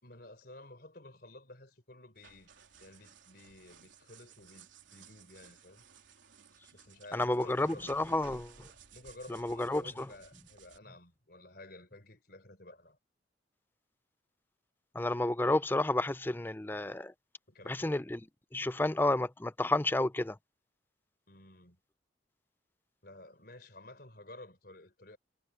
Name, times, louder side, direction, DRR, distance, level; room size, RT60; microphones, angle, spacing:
voice 1, 0.0-2.5 2.8-5.8 6.7-7.9 8.9-13.0 17.5-18.0 21.3-21.8 23.0-25.2, left 2 dB, 55° left, 3.9 m, -52 dB
sound 1, 2.1-10.8, right 6 dB, 80° right, 3.6 m, -57 dB
voice 2, 7.1-8.7 9.3-10.1 14.9-17.1 17.7-18.2 18.5-20.4, left 2 dB, 10° left, 0.4 m, -31 dB
head